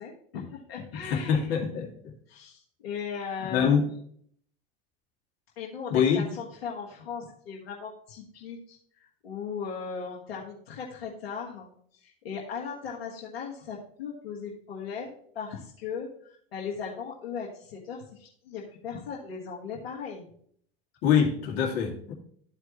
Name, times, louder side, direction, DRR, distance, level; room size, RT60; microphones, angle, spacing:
voice 1, 0.0-1.5 2.3-3.8 5.5-20.3, left 6 dB, 85° left, -2 dB, 1.5 m, -38 dB
voice 2, 1.0-1.9 3.5-3.8 5.9-6.2 21.0-22.1, left 7 dB, 55° left, 0 dB, 2.2 m, -24 dB
12.5 x 4.6 x 3.0 m, 0.62 s
hypercardioid pair, 90°, 30 cm